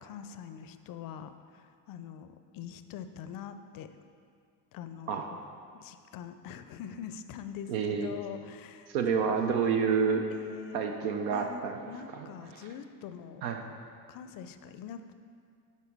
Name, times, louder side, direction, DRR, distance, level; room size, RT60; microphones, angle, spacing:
voice 1, 0.0-3.9 4.7-5.2 5.8-9.4 10.3-10.9 11.3-13.4 14.1-15.0, left 8 dB, 45° left, 10 dB, 0.5 m, -44 dB
voice 2, 7.7-8.1 8.9-10.3 10.7-11.8 12.1-12.7 13.4-13.6, right 6 dB, 75° right, 4 dB, 0.7 m, -29 dB
7.3 x 3.8 x 5.3 m, 2.3 s
hypercardioid pair, 70°, 49 cm